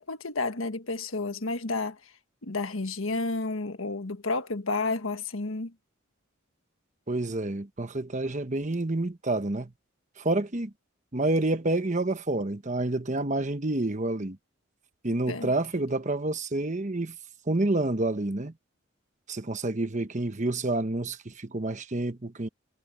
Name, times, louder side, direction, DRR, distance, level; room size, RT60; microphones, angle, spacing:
voice 1, 0.0-2.0 2.4-5.7 15.3-15.5, left 3 dB, 85° left, 1.6 m, -31 dB
voice 2, 7.1-9.7 10.2-10.7 11.1-14.4 15.0-17.2 17.5-18.5 19.3-22.5, right 2 dB, 35° right, 1.2 m, -28 dB
head